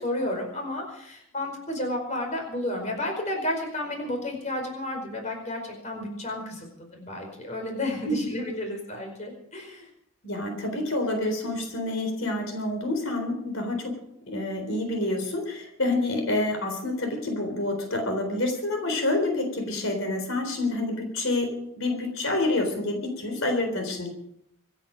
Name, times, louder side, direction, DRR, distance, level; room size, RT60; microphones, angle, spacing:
voice 1, 0.0-9.9, left 1 dB, 35° left, 2 dB, 4.9 m, -32 dB
voice 2, 10.2-14.0 14.3-24.1, left 2 dB, 85° left, 4 dB, 3.9 m, -28 dB
26.0 x 9.7 x 5.2 m, 0.72 s
head